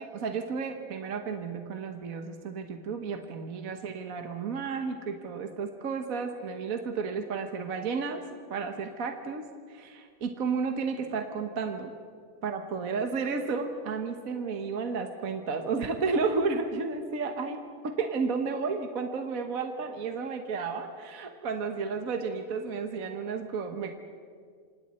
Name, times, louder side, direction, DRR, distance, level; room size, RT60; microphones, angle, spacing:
voice 1, 0.0-8.2 8.5-11.9 12.4-24.0, right 4 dB, 50° right, 5 dB, 1.5 m, -32 dB
28.5 x 26.0 x 4.3 m, 2.1 s
omnidirectional pair, 2.2 m